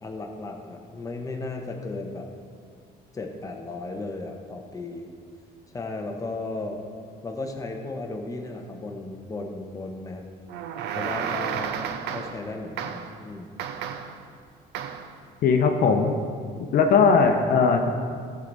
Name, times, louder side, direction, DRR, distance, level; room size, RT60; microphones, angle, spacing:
voice 1, 0.0-2.3 3.1-5.1 5.7-6.8 7.2-10.2 11.0-11.8 12.1-13.5, left 2 dB, 20° left, 2 dB, 1.0 m, -35 dB
sound 1, 10.5-12.5 12.8-13.2 13.6-14.2 14.7-15.1, right 8 dB, 85° right, 0.6 m, -32 dB
voice 2, 15.4-16.1 16.7-17.9, left 5 dB, 60° left, 4 dB, 0.8 m, -19 dB
14.0 x 4.8 x 4.0 m, 2.1 s
cardioid pair, 110°, 17 cm